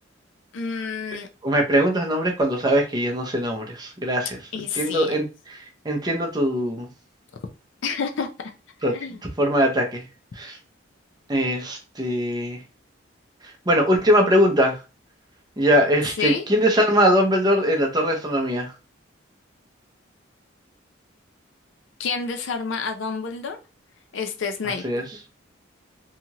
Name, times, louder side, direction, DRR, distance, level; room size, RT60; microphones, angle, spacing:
voice 1, 0.5-1.3 4.5-5.2 7.8-8.5 8.9-9.2 16.2-16.5 22.0-23.6 24.1-24.8, left 5 dB, 70° left, 5 dB, 0.5 m, -29 dB
voice 2, 1.4-4.4 4.7-5.6 5.8-6.9 8.8-9.0 9.4-10.0 10.4-10.6 11.3-12.6 13.7-14.8 15.6-18.7 24.8-25.0, equal, 20° right, 2 dB, 0.6 m, -21 dB
2.8 x 2.4 x 2.8 m, 0.30 s
head